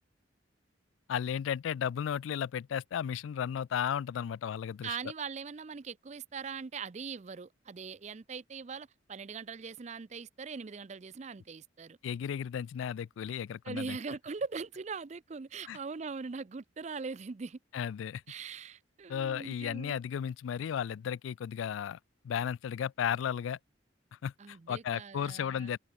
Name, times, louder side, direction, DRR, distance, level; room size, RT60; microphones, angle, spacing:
voice 1, 1.1-5.0 12.0-14.0 15.7-15.8 17.7-18.2 19.1-22.0 22.2-23.6 24.1-25.8, left 8 dB, 80° left, 0.3 m, -34 dB
voice 2, 4.8-12.0 13.6-17.6 18.3-20.0 24.4-25.7, right 5 dB, 35° right, 0.4 m, -41 dB
head